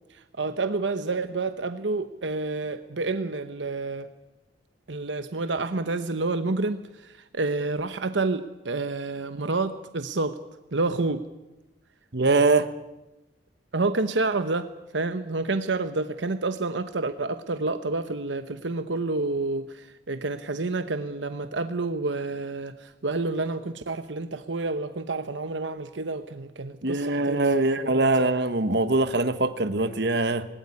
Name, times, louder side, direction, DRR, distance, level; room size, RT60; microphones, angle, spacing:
voice 1, 0.1-4.1 4.9-10.4 10.7-11.2 13.7-28.3, right 3 dB, 85° right, 10 dB, 1.0 m, -29 dB
voice 2, 12.1-12.7 26.8-30.5, right 2 dB, 65° right, 11 dB, 1.3 m, -23 dB
19.5 x 18.0 x 9.8 m, 0.99 s
head